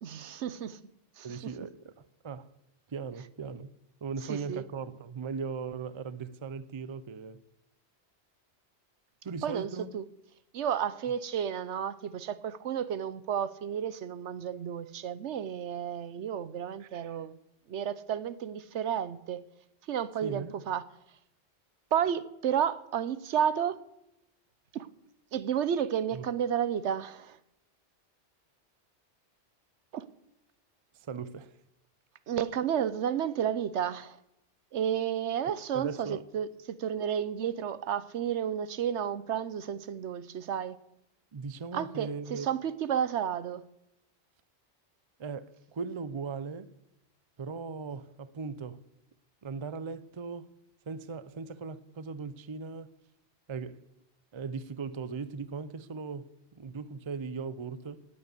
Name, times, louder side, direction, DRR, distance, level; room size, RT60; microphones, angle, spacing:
voice 1, 0.0-0.8 1.2-1.5 4.3-4.6 9.4-10.0 10.5-17.4 17.7-19.4 19.9-20.8 21.9-23.8 24.7-24.9 25.3-27.4 29.9-30.0 32.3-34.2 34.7-40.8 41.7-43.7, right 9 dB, 80° right, 1.1 m, -32 dB
voice 2, 1.2-2.5 2.9-3.7 4.0-7.4 9.2-9.9 16.8-17.2 20.2-20.5 26.1-26.2 30.9-31.6 35.4-36.2 41.3-42.5 45.2-46.7 47.4-48.8 49.4-50.5 50.9-52.9 53.5-53.8 54.3-58.1, right 5 dB, 35° right, 0.5 m, -38 dB
18.0 x 8.1 x 8.2 m
omnidirectional pair, 1.2 m